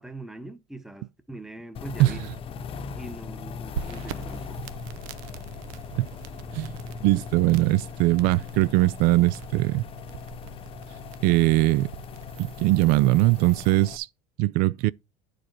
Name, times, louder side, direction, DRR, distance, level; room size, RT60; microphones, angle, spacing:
voice 1, 0.0-2.2 3.0-4.8, right 2 dB, ahead, 0.9 m, -42 dB
sound 1, 1.7-14.0, left 6 dB, 35° left, 0.8 m, -39 dB
sound 2, 3.7-13.7, right 9 dB, 85° right, 0.7 m, -42 dB
voice 2, 6.5-9.8 11.2-11.9 12.4-14.1 14.4-14.9, right 18 dB, 65° right, 0.4 m, -21 dB
9.8 x 5.0 x 4.5 m
cardioid pair, 140°, 17 cm